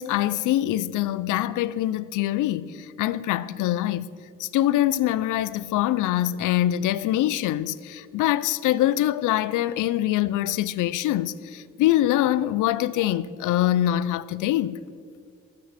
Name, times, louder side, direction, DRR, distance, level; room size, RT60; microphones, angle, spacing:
voice 1, 0.0-4.1 4.4-14.8, left 13 dB, 85° left, 0.5 m, -24 dB
22.0 x 9.0 x 4.2 m
cardioid pair, 90°, 30 cm